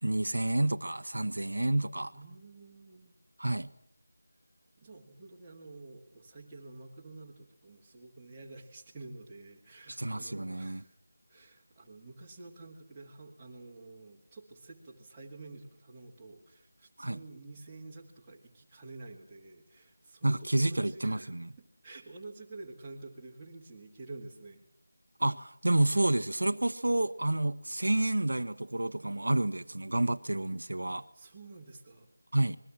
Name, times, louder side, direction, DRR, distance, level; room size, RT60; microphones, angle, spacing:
voice 1, 0.0-2.1 3.4-3.7 9.9-10.8 17.0-17.2 20.2-21.5 25.2-31.0 32.3-32.6, right 1 dB, 85° right, 9 dB, 1.2 m, -29 dB
voice 2, 2.1-3.1 4.8-10.9 11.3-24.6 30.9-32.1, right 3 dB, 10° right, -5 dB, 2.1 m, -49 dB
27.0 x 21.5 x 7.4 m, 0.66 s
figure-of-eight pair, 180°, 0 cm